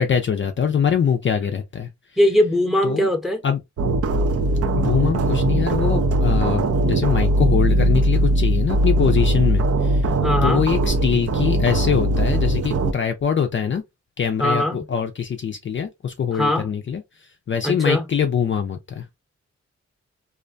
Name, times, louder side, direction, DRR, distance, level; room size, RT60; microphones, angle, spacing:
voice 1, 0.0-1.9 2.8-3.1 3.4-3.6 4.7-10.1 10.4-13.8 14.2-19.1, left 7 dB, 45° left, 0.4 m, -23 dB
voice 2, 2.2-3.4 10.2-10.7 14.4-14.8 16.3-16.6 17.6-18.0, left 1 dB, ahead, 0.8 m, -20 dB
sound 1, 3.8-12.9, right 1 dB, 55° right, 0.5 m, -20 dB
2.4 x 2.1 x 2.5 m
cardioid pair, 60°, 29 cm